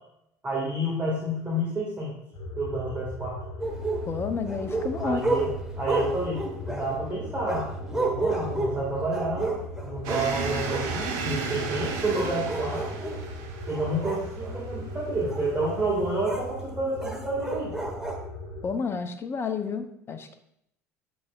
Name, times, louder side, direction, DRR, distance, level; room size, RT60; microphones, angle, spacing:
voice 1, 0.4-2.1 2.6-3.4 5.0-5.5 5.8-13.2 13.7-17.8, right 2 dB, 20° right, -5 dB, 2.0 m, -29 dB
sound 1, 2.3-18.7, left 1 dB, 45° left, 2.1 m, -39 dB
sound 2, 3.6-10.3 10.7-11.1 11.7-13.2 13.7-14.6 15.3-15.4 16.2-16.4 17.0-18.2, right 2 dB, 5° right, 1.2 m, -32 dB
voice 2, 4.1-5.2 18.6-20.4, left 5 dB, 30° left, 9 dB, 0.7 m, -30 dB
sound 3, 10.0-16.5, right 5 dB, 60° right, 1.0 m, -35 dB
7.7 x 6.2 x 2.4 m, 0.77 s
figure-of-eight pair, 65°, 9 cm